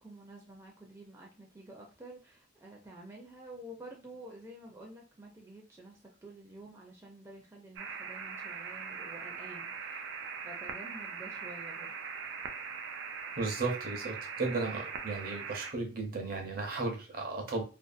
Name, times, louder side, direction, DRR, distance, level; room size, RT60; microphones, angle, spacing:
voice 1, 0.0-10.1 10.4-11.9 12.3-12.4, right 1 dB, 15° right, -2 dB, 0.4 m, -50 dB
sound 1, 7.8-15.7, right 5 dB, 90° right, 0.4 m, -41 dB
voice 2, 13.4-17.6, right 3 dB, 55° right, 3 dB, 0.7 m, -35 dB
2.6 x 2.4 x 2.4 m, 0.32 s
head